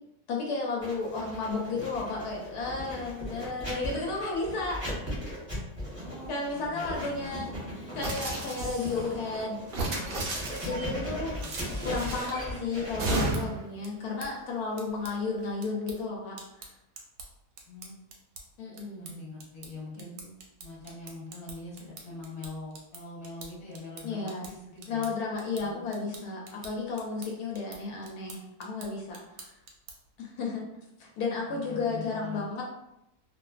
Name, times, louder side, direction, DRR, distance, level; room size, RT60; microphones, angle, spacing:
voice 1, 0.3-5.3 6.3-7.5 7.9-9.6 10.6-11.4 11.8-16.7 18.6-19.2 20.0-20.3 24.0-24.5 24.9-29.5 30.2-30.7 31.0-32.6, left 3 dB, 80° left, -2 dB, 1.1 m, -33 dB
Writing, 0.8-15.5, equal, 10° right, 0.7 m, -38 dB
voice 2, 5.9-8.1 10.8-11.8 17.7-18.0 19.0-20.1 20.6-25.2 25.6-26.1 31.2-32.6, left 3 dB, 45° left, -5 dB, 1.0 m, -44 dB
sound 1, 8.0-9.1 9.7-10.9 11.4-12.4 13.0-13.6, right 2 dB, 90° right, 0.4 m, -33 dB
sound 2, 12.8-30.2, right 4 dB, 70° right, 0.9 m, -50 dB
2.4 x 2.4 x 2.3 m, 0.85 s
omnidirectional pair, 1.6 m